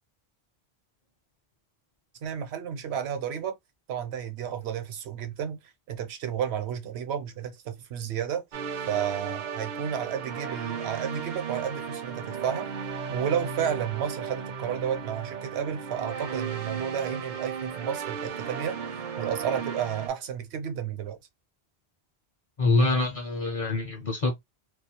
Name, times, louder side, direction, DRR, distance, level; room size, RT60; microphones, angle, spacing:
voice 1, 2.2-3.5 3.9-5.6 5.9-8.4 8.9-12.7 13.1-18.8 19.2-21.2, right 8 dB, 80° right, 0.9 m, -32 dB
sound 1, 8.5-20.1, right 6 dB, 60° right, 0.6 m, -35 dB
voice 2, 22.6-24.4, left 2 dB, 40° left, 0.6 m, -25 dB
2.3 x 2.3 x 2.8 m
omnidirectional pair, 1.1 m